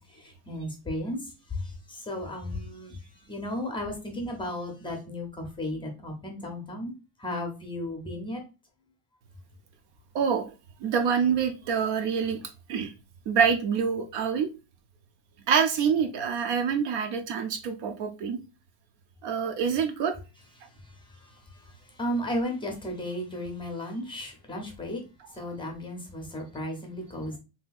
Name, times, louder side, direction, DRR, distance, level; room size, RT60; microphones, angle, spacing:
voice 1, 0.5-1.2 1.9-2.9 3.3-6.9 7.2-8.4 22.0-25.0 25.4-27.4, left 1 dB, 10° left, 0.6 m, -34 dB
voice 2, 10.1-10.5 10.8-12.4 12.7-12.9 13.3-14.5 15.5-18.4 19.2-20.2, right 6 dB, 60° right, 0.6 m, -26 dB
3.2 x 2.8 x 2.2 m
cardioid pair, 155°, 49 cm